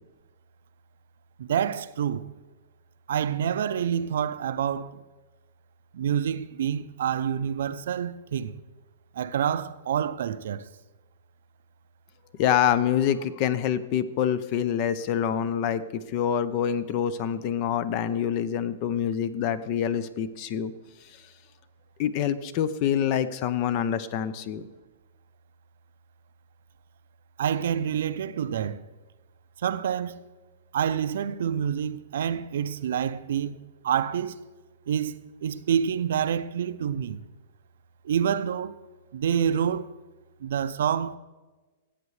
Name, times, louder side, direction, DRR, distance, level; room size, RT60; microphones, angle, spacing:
voice 1, 1.4-2.3 3.1-5.0 5.9-8.6 9.1-10.7 27.4-28.8 29.6-30.2 30.7-34.4 34.9-37.2 38.0-38.8 39.1-39.9 40.4-41.2, right 8 dB, 70° right, 0.5 m, -27 dB
voice 2, 12.4-20.7 22.0-24.6, left 9 dB, 40° left, 0.6 m, -26 dB
16.0 x 8.1 x 3.2 m
hypercardioid pair, 155°, 0 cm